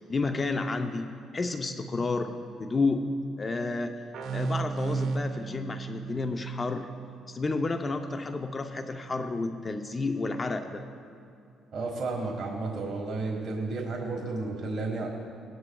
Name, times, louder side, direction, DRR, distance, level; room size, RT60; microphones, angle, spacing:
voice 1, 0.1-2.3 2.6-4.0 4.3-6.9 7.3-10.8, left 3 dB, 30° left, 7 dB, 0.6 m, -30 dB
sound 1, 4.1-7.6, right 5 dB, 65° right, 0.9 m, -35 dB
voice 2, 11.7-15.1, right 3 dB, 45° right, -1 dB, 1.4 m, -32 dB
18.0 x 11.0 x 2.3 m, 2.5 s
cardioid pair, 85°, 0 cm